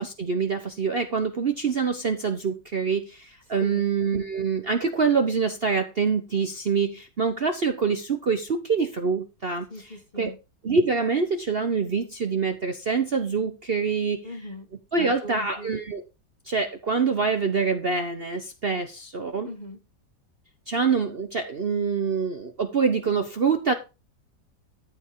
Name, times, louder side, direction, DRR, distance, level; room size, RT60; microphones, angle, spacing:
voice 1, 0.0-9.7 10.2-10.3 10.6-14.2 14.9-16.0 16.5-19.5 20.7-23.7, right 5 dB, 40° right, 7 dB, 0.9 m, -25 dB
voice 2, 9.7-10.4 14.2-14.7 15.0-15.8 19.4-19.8, equal, 30° left, 6 dB, 1.1 m, -39 dB
13.0 x 5.3 x 4.7 m, 0.28 s
omnidirectional pair, 1.9 m